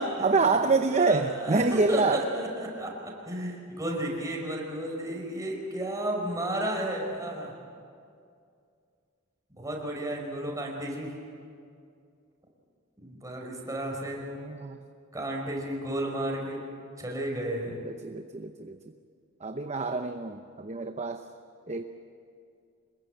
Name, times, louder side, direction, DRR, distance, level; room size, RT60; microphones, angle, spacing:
voice 1, 0.0-2.2 14.4-14.8 17.8-18.8 19.4-21.3 21.7-21.8, right 3 dB, 30° right, 7 dB, 0.8 m, -27 dB
voice 2, 0.9-2.9 3.3-7.5 9.5-11.1 13.0-14.2 15.1-16.6 17.0-17.8, right 1 dB, 15° right, 0 dB, 5.3 m, -32 dB
26.0 x 21.5 x 9.3 m, 2.4 s
head